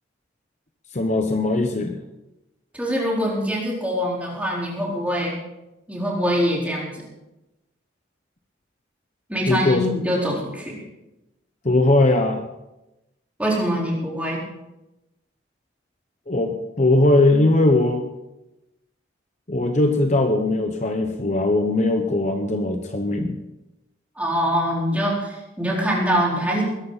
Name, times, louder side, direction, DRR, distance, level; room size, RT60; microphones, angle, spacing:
voice 1, 0.9-2.0 9.5-9.9 11.6-12.5 16.3-18.0 19.5-23.4, left 2 dB, 40° left, 5 dB, 1.0 m, -20 dB
voice 2, 2.7-5.4 5.9-7.0 9.3-10.8 13.4-14.4 24.2-26.6, equal, 10° right, -4 dB, 4.2 m, -24 dB
21.0 x 11.5 x 4.1 m, 0.96 s
head